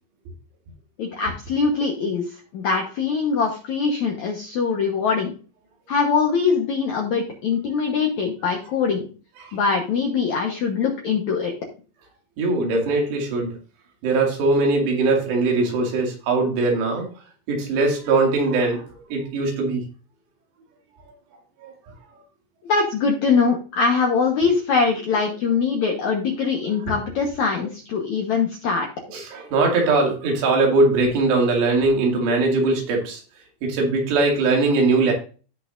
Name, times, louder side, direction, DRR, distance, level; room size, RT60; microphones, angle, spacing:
voice 1, 1.0-2.2 2.5-5.3 5.9-9.1 9.5-11.5 22.6-28.9, left 5 dB, 65° left, 1 dB, 1.8 m, -22 dB
voice 2, 12.4-13.5 14.0-17.1 17.5-18.8 19.1-19.8 21.6-21.7 29.1-33.2 33.6-35.1, right 3 dB, 85° right, 0 dB, 4.5 m, -20 dB
16.5 x 5.7 x 2.6 m, 0.37 s
omnidirectional pair, 4.9 m